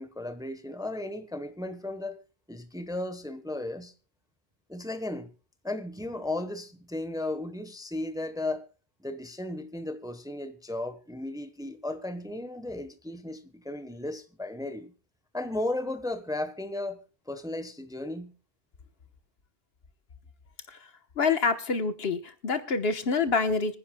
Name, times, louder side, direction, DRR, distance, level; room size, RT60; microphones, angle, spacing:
voice 1, 0.0-2.2 2.5-3.9 4.7-5.3 5.6-8.6 9.0-14.9 15.3-18.3, left 2 dB, 5° right, 0.9 m, -35 dB
voice 2, 21.2-23.8, left 4 dB, 65° left, 1.3 m, -27 dB
26.0 x 10.0 x 2.2 m
omnidirectional pair, 1.1 m